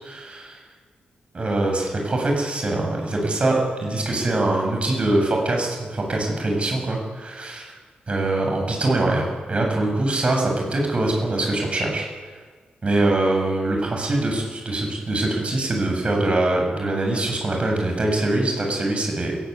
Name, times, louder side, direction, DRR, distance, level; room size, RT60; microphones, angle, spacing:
voice 1, 0.0-0.4 1.3-7.7 8.1-12.1 12.8-19.4, right 2 dB, 35° right, 1 dB, 7.7 m, -23 dB
29.5 x 17.0 x 9.7 m, 1.5 s
wide cardioid pair, 130°, 3 cm